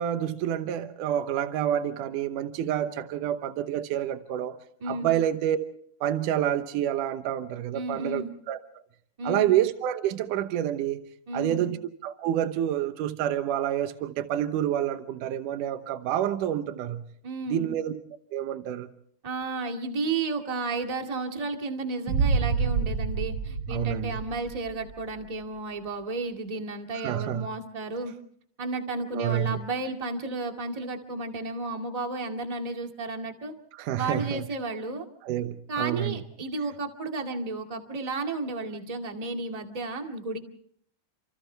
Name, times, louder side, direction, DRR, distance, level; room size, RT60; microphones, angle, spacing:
voice 1, 0.0-4.6 4.9-5.6 6.0-8.6 9.2-11.0 11.3-11.8 12.0-17.0 17.5-18.0 18.3-18.9 23.7-24.2 26.9-27.5 29.1-29.6 33.8-34.4 35.2-36.2, right 11 dB, 80° right, 2.5 m, -28 dB
voice 2, 4.8-5.2 7.7-8.3 9.2-9.5 11.3-11.7 17.2-17.8 19.2-28.1 28.6-33.5 34.0-35.1 35.7-40.4, right 3 dB, 15° right, 1.6 m, -33 dB
sound 1, 22.1-25.0, right 5 dB, 55° right, 2.4 m, -28 dB
30.0 x 27.0 x 3.4 m
omnidirectional pair, 3.7 m